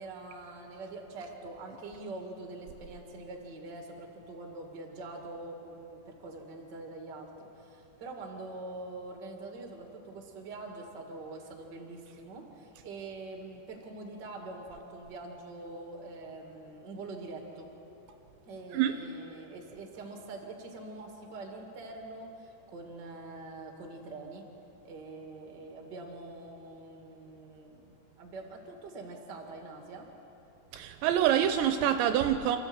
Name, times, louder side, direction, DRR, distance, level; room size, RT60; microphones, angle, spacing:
voice 1, 0.0-17.7 18.5-24.4 24.8-30.1, right 2 dB, 35° right, 2 dB, 2.0 m, -44 dB
voice 2, 30.7-32.6, right 10 dB, 80° right, 8 dB, 2.8 m, -26 dB
28.0 x 13.5 x 8.1 m, 3.0 s
omnidirectional pair, 5.4 m